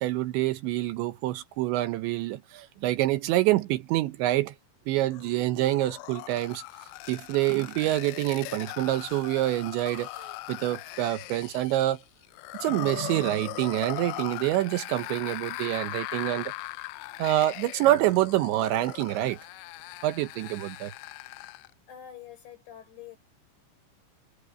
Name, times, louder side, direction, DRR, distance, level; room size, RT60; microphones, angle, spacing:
voice 1, 0.0-4.5 4.9-6.6 7.1-12.0 12.6-16.5 17.2-19.4 20.0-20.9, right 15 dB, 75° right, 3.1 m, -26 dB
sound 1, 5.1-21.7, left 21 dB, 85° left, 2.6 m, -40 dB
voice 2, 21.9-23.2, left 10 dB, 65° left, 8.4 m, -46 dB
omnidirectional pair, 5.5 m